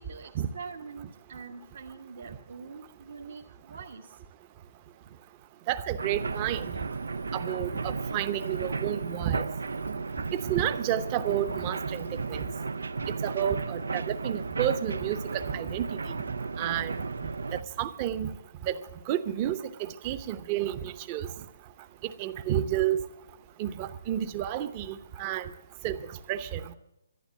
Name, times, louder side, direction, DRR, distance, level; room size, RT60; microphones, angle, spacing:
voice 1, 0.0-4.2, right 5 dB, 65° right, 0 dB, 1.3 m, -44 dB
voice 2, 5.7-6.7 7.3-9.4 10.3-12.5 13.2-15.2 15.5-16.1 16.6-16.9 17.8-18.3 18.6-18.8 19.1-20.8 21.1-21.3 22.2-23.0 23.6-25.5 25.8-26.0 26.3-26.6, right 11 dB, 25° right, 11 dB, 0.8 m, -30 dB
sound 1, 6.0-17.6, right 4 dB, 90° right, 0.6 m, -34 dB
12.0 x 11.0 x 8.4 m, 0.91 s
hypercardioid pair, 155°, 0 cm